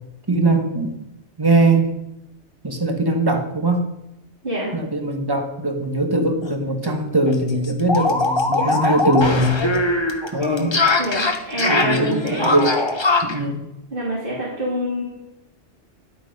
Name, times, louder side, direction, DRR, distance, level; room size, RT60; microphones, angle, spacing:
voice 1, 0.3-1.0 1.4-2.0 2.6-3.8 4.7-9.6 10.3-10.8 11.7-12.7 13.2-13.6, right 2 dB, 20° right, 5 dB, 1.3 m, -21 dB
voice 2, 4.4-4.7 11.0-12.6 13.9-15.0, equal, 50° right, -7 dB, 3.6 m, -26 dB
sound 1, 6.4-6.5 6.8-6.9 7.3-13.4, left 2 dB, 25° left, 1.0 m, -21 dB
11.0 x 8.3 x 5.4 m, 0.90 s
omnidirectional pair, 1.2 m